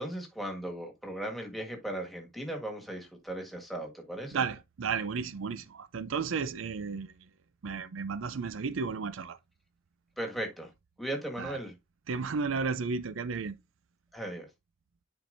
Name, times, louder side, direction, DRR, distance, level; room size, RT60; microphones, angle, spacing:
voice 1, 0.0-4.4 10.2-10.7 11.0-11.7 14.1-14.5, right 1 dB, ahead, 1.7 m, -37 dB
voice 2, 4.3-7.1 7.6-9.4 11.4-11.5 12.1-13.5, right 5 dB, 75° right, 0.5 m, -33 dB
10.0 x 4.4 x 2.6 m
head